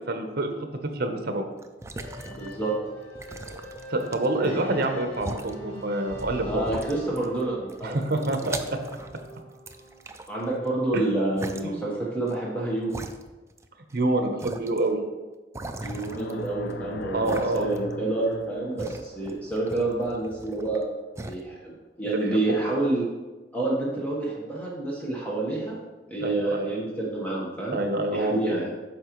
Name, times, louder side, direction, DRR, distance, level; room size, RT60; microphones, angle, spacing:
voice 1, 0.0-1.4 3.9-6.6 7.8-8.8 10.9-11.0 11.6-11.8 13.9-15.0 17.1-17.7 22.0-22.6 26.2-26.7 27.7-28.6, right 2 dB, 60° right, 6 dB, 0.9 m, -27 dB
sound 1, 1.6-2.7 3.2-4.5 5.1-5.5 6.2-6.3 6.6-7.4 7.7-9.3 9.7-10.7 11.4-11.6 12.3-12.4 12.9-13.7 13.9-14.0 14.4-14.8 15.5-16.7 17.3-17.9 18.2-20.8 21.2-21.4, right 2 dB, 15° right, 0.4 m, -39 dB
sound 2, 2.0-10.0, right 1 dB, 30° left, 1.6 m, -42 dB
voice 2, 2.3-2.7 6.4-8.0 10.3-12.9 15.8-20.8 21.2-23.1 23.5-25.8 26.1-27.8 28.1-28.7, right 2 dB, 10° left, -5 dB, 1.2 m, -28 dB
sound 3, 15.8-20.9, left 3 dB, 75° left, 0.4 m, -40 dB
8.7 x 5.6 x 3.1 m, 1.2 s
head